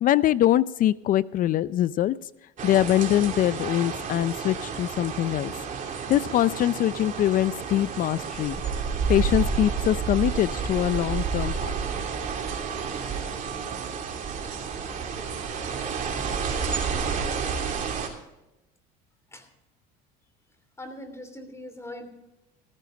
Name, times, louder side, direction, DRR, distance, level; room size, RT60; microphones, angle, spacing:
voice 1, 0.0-2.2 2.6-5.5 6.1-8.6 9.1-11.7, left 12 dB, 45° left, 19 dB, 0.4 m, -23 dB
sound 1, 2.6-18.1, right 6 dB, 40° right, 2.8 m, -30 dB
voice 2, 20.8-22.1, left 1 dB, 15° left, 8 dB, 2.9 m, -40 dB
14.5 x 14.5 x 3.8 m, 0.93 s
supercardioid pair, 110°, 20 cm